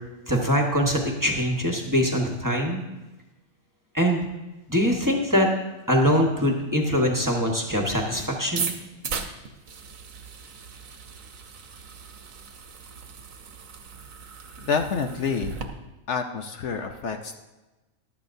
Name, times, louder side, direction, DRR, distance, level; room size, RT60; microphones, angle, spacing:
voice 1, 0.3-2.8 3.9-4.2 4.7-5.5 5.9-8.7, equal, 15° right, 0 dB, 1.2 m, -23 dB
sound 1, 8.6-15.6, right 5 dB, 80° right, 1.4 m, -37 dB
voice 2, 14.6-15.5 16.1-17.3, left 5 dB, 65° left, 5 dB, 1.0 m, -28 dB
14.5 x 11.5 x 2.7 m, 1.1 s
omnidirectional pair, 1.4 m